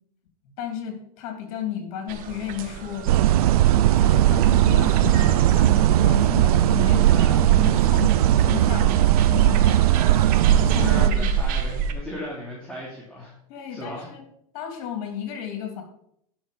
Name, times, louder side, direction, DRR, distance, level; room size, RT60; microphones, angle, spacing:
voice 1, 0.6-3.1 4.0-10.0 10.5-11.3 13.5-14.2 14.5-15.8, left 9 dB, 60° left, 4 dB, 3.0 m, -33 dB
sound 1, 2.1-11.9, right 6 dB, 50° right, 1.4 m, -30 dB
sound 2, 3.1-11.1, right 13 dB, 85° right, 0.4 m, -18 dB
voice 2, 7.1-7.4 9.9-13.3 13.7-14.1, left 1 dB, 5° left, -5 dB, 3.0 m, -36 dB
10.5 x 6.1 x 5.5 m, 0.72 s
hypercardioid pair, 110°, 19 cm